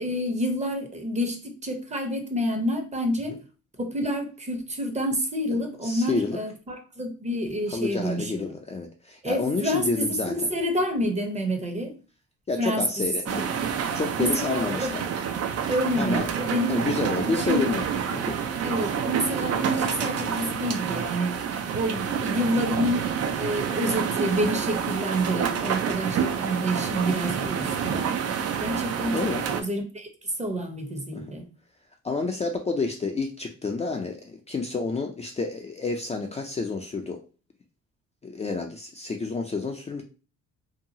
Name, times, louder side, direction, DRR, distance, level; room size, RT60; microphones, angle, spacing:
voice 1, 0.0-3.4 3.8-8.5 9.2-12.0 12.6-13.4 14.2-15.0 15.7-16.8 17.4-17.7 18.6-23.1 23.4-28.2 28.6-30.1 30.4-31.5, equal, 25° right, 0.7 m, -28 dB
voice 2, 5.5-6.4 7.7-10.5 12.5-13.5 13.9-15.0 16.0-16.3 16.7-17.8 21.9-22.1 27.4-27.5 29.1-29.4 31.1-31.4 32.0-37.2 38.2-40.0, left 4 dB, 20° left, 0.4 m, -29 dB
sound 1, 13.2-29.6, right 7 dB, 55° right, 0.5 m, -28 dB
2.8 x 2.3 x 2.7 m
cardioid pair, 90°, 30 cm